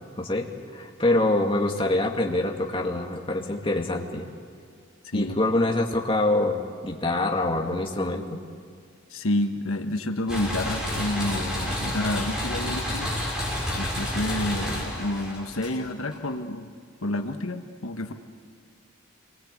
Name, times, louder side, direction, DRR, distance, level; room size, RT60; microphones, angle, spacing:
voice 1, 0.7-4.3 5.1-8.4, left 2 dB, 25° left, 1 dB, 2.2 m, -25 dB
voice 2, 5.0-5.4 9.1-13.1 13.7-16.7 17.0-18.1, left 1 dB, 80° left, 6 dB, 1.4 m, -29 dB
sound 1, 10.3-16.1, left 1 dB, 5° right, 5.9 m, -30 dB
27.0 x 22.5 x 8.4 m, 2.1 s
head